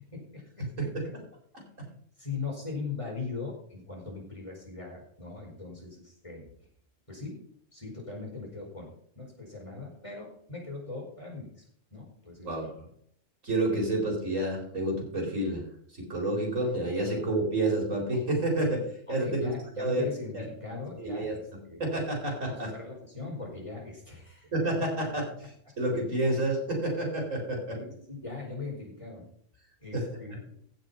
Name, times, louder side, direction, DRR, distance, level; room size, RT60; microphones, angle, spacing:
voice 1, 0.1-0.7 2.2-6.4 7.1-7.4 7.7-11.6 11.9-12.6 17.1-17.2 19.2-21.3 21.6-21.8 22.5-24.5 24.8-24.9 27.7-29.3 29.8-30.6, left 4 dB, 25° left, -2 dB, 5.0 m, -40 dB
voice 2, 1.5-1.9 12.4-12.7 13.4-15.6 15.9-19.5 19.8-20.1 20.3-20.4 21.0-21.4 21.8-22.7 24.5-27.8 29.9-30.4, right 1 dB, 80° right, 0 dB, 4.5 m, -29 dB
16.0 x 6.4 x 5.6 m, 0.64 s
omnidirectional pair, 1.3 m